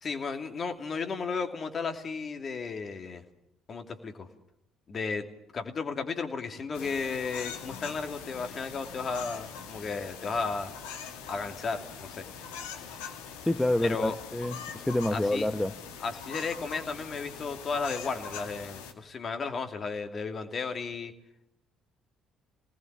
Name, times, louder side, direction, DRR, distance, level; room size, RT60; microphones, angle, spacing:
voice 1, 0.0-3.2 3.7-4.3 4.9-5.3 5.5-10.7 11.3-12.2 13.8-14.1 15.1-15.5 16.0-21.1, left 4 dB, 40° left, 6 dB, 2.7 m, -34 dB
sound 1, 6.7-18.9, left 7 dB, 70° left, 2.2 m, -42 dB
voice 2, 13.5-15.8, left 1 dB, 10° left, 9 dB, 1.0 m, -28 dB
26.5 x 19.5 x 7.4 m, 0.79 s
figure-of-eight pair, 50°, 0 cm